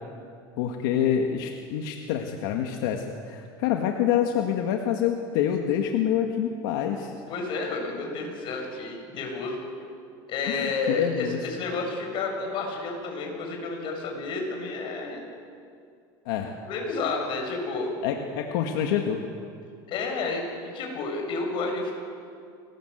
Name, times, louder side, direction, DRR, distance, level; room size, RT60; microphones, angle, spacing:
voice 1, 0.6-7.2 10.5-11.4 16.3-16.6 18.0-19.2, left 9 dB, 85° left, 2 dB, 1.9 m, -27 dB
voice 2, 7.3-9.6 10.3-15.2 16.6-17.9 19.9-21.9, left 3 dB, 50° left, 2 dB, 7.2 m, -30 dB
26.0 x 19.5 x 8.2 m, 2.3 s
cardioid pair, 140°, 11 cm